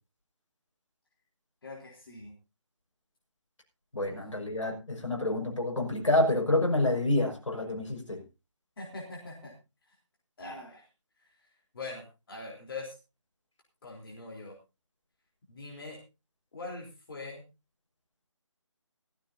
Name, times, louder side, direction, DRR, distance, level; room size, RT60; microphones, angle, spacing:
voice 1, 1.6-2.3 4.1-4.2 8.8-9.5 10.4-10.8 11.7-13.0 13.8-14.5 15.5-16.0 16.5-17.4, left 3 dB, 45° left, -1 dB, 3.8 m, -42 dB
voice 2, 3.9-8.2, left 1 dB, 75° left, 1 dB, 6.0 m, -28 dB
16.5 x 15.5 x 2.8 m, 0.28 s
figure-of-eight pair, 160°, 16 cm